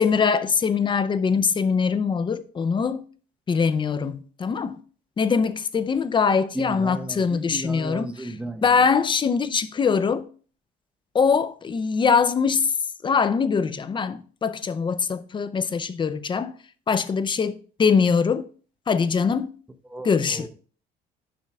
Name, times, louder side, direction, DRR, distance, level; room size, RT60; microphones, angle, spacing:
voice 1, 0.0-3.0 3.5-4.8 5.2-8.3 8.6-10.3 11.1-12.7 13.0-16.5 16.9-18.5 18.9-19.5 20.0-20.5, left 5 dB, 30° left, 0.6 m, -22 dB
voice 2, 6.5-8.7 19.9-20.5, right 1 dB, 5° right, 0.9 m, -34 dB
7.6 x 5.4 x 3.5 m
cardioid pair, 110°, 17 cm